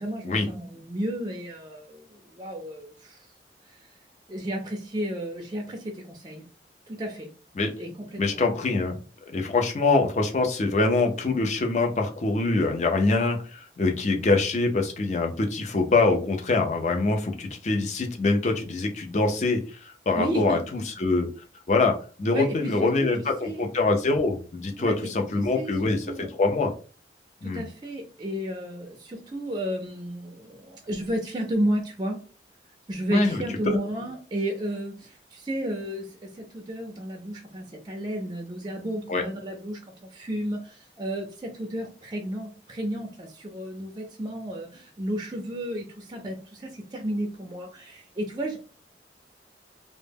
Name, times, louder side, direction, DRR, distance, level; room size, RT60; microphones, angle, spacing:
voice 1, 0.0-0.6 0.9-1.7 2.4-2.7 4.3-4.6 4.9-5.6 6.2-6.4 7.0-7.1 7.8-7.9 20.2-20.6 22.3-22.5 23.0-23.1 23.4-23.6 24.8-24.9 25.6-25.7 26.1-26.3 27.6-28.8 29.3-30.3 30.9-32.2 32.9-34.9 35.5-36.0 36.7-39.7 40.3-40.6 41.0-41.2 41.7-41.9 42.1-42.5 42.8-43.1 43.5-43.9 44.2-44.7 45.0-45.8 46.2-46.3 47.0-47.7 48.3-48.6, right 1 dB, 25° right, 2 dB, 0.4 m, -30 dB
voice 2, 8.2-9.0 9.3-21.3 21.7-26.1 26.4-26.7 27.4-27.6 33.1-33.8 39.1-39.2, left 3 dB, 40° left, 3 dB, 0.4 m, -24 dB
2.1 x 2.0 x 3.3 m, 0.37 s
head